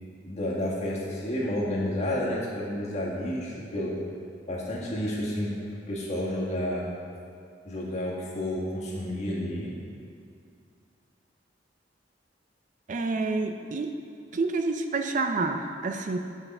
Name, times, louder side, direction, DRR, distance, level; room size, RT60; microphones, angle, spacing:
voice 1, 0.2-4.0 4.5-5.5 5.9-6.8 7.6-9.7, left 1 dB, 40° left, -5 dB, 1.7 m, -30 dB
voice 2, 12.9-13.9 14.3-16.2, right 3 dB, 45° right, 5 dB, 0.4 m, -28 dB
8.2 x 5.6 x 5.4 m, 2.4 s
head